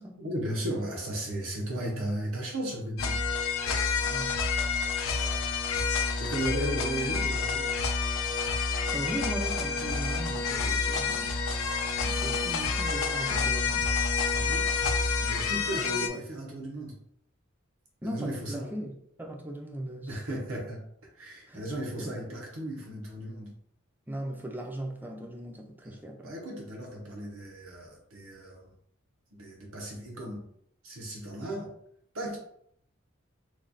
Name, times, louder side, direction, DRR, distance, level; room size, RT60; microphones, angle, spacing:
voice 1, 0.2-3.2 6.2-7.7 14.3-14.7 15.2-17.0 18.0-18.7 20.1-20.8 21.1-23.5 25.8-26.0 26.2-28.7 29.3-30.4 30.8-31.7 32.1-32.4, right 1 dB, 90° right, 0.9 m, -35 dB
sound 1, 3.0-16.1, left 4 dB, 75° left, 0.5 m, -28 dB
voice 2, 4.0-4.4 8.9-11.4 12.0-13.9 15.7-16.2 18.0-20.2 21.5-21.7 22.0-22.2 24.1-26.4, right 1 dB, 10° right, 0.5 m, -38 dB
3.1 x 2.3 x 3.8 m
head